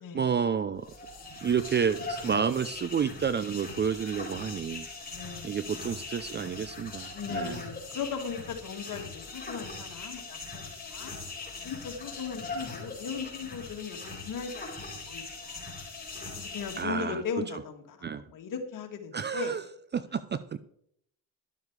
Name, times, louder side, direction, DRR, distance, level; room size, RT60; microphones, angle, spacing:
voice 1, 0.1-0.9 1.4-4.9 5.4-7.6 16.8-17.2 18.0-18.2 19.1-19.6 19.9-20.6, right 7 dB, 25° right, 15 dB, 0.5 m, -30 dB
sound 1, 0.7-16.8, left 3 dB, 20° left, 4.0 m, -41 dB
voice 2, 5.1-5.8 7.1-11.1 11.6-14.7 15.0-15.6 16.4-19.6, left 6 dB, 50° left, 4 dB, 2.3 m, -38 dB
11.5 x 7.2 x 4.8 m, 0.70 s
supercardioid pair, 90°, 41 cm